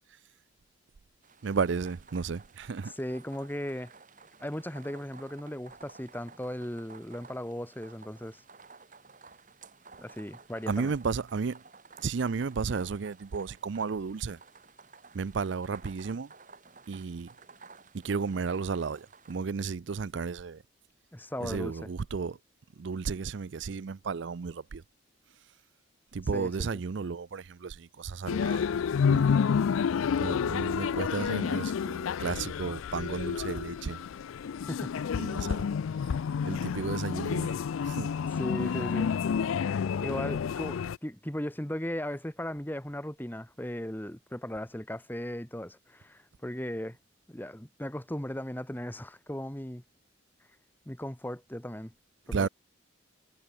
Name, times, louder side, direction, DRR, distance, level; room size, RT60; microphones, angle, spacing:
sound 1, 1.2-19.4, right 4 dB, 40° right, 2.7 m, -54 dB
voice 1, 1.4-2.9 10.7-11.6 12.0-14.4 15.1-16.3 16.9-17.3 17.9-20.6 21.4-22.4 22.8-24.8 26.1-28.7 29.1-29.3 30.2-34.1 35.2-35.7 36.0-36.2 36.4-37.6 37.8-38.1 52.3-52.5, right 5 dB, 60° right, 0.5 m, -33 dB
voice 2, 3.0-3.9 4.4-8.4 10.0-10.9 21.1-21.9 26.3-26.5 34.7-34.9 38.3-39.1 39.5-47.0 47.3-49.8 50.8-51.9 52.3-52.5, equal, 10° left, 1.4 m, -37 dB
sound 2, 28.3-41.0, left 6 dB, 75° left, 0.4 m, -29 dB
head